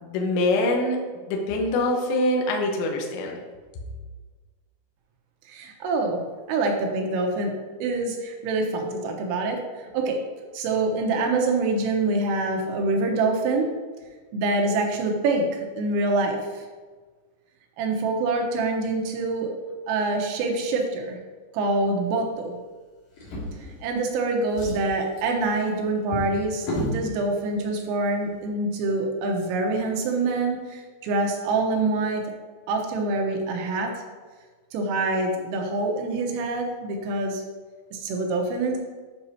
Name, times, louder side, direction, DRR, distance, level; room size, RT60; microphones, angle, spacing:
voice 1, 0.0-1.0 1.3-3.4, left 1 dB, 75° left, 1 dB, 2.9 m, -24 dB
voice 2, 5.5-6.2 6.5-7.6 7.8-9.6 9.9-10.2 10.5-13.7 14.3-16.7 17.8-19.5 19.9-21.2 21.5-22.6 23.8-32.2 32.7-33.9 34.7-37.4 37.9-38.8, right 3 dB, 85° right, 1 dB, 3.5 m, -25 dB
Drawer open or close, 23.1-24.1 24.4-27.0 27.9-28.1 28.5-28.6, left 1 dB, 55° left, 2.5 m, -33 dB
9.4 x 5.8 x 2.8 m, 1.4 s
omnidirectional pair, 5.9 m